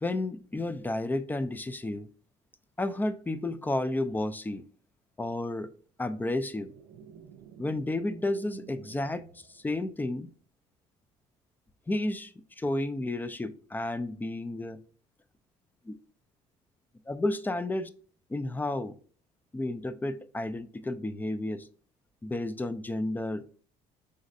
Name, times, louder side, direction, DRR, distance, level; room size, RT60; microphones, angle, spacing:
voice 1, 0.0-2.1 2.8-4.6 5.2-5.7 6.0-6.7 7.6-10.3 11.9-14.8 15.8-16.0 17.1-17.9 18.3-19.0 19.5-21.7 22.2-23.4, left 2 dB, 10° left, 0.3 m, -32 dB
sound 1, 6.6-10.3, right 8 dB, 65° right, 0.4 m, -52 dB
5.1 x 3.1 x 2.5 m
cardioid pair, 110°, 17 cm